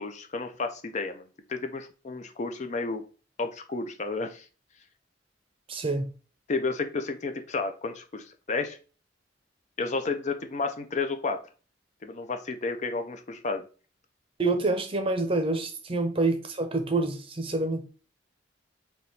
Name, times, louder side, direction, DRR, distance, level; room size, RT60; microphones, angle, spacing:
voice 1, 0.0-3.0 3.4-4.5 6.5-8.8 9.8-11.4 12.0-13.7, left 3 dB, 40° left, 0.5 m, -32 dB
voice 2, 5.7-6.1 14.4-17.8, right 2 dB, 30° right, 0.6 m, -27 dB
3.5 x 2.9 x 4.0 m
head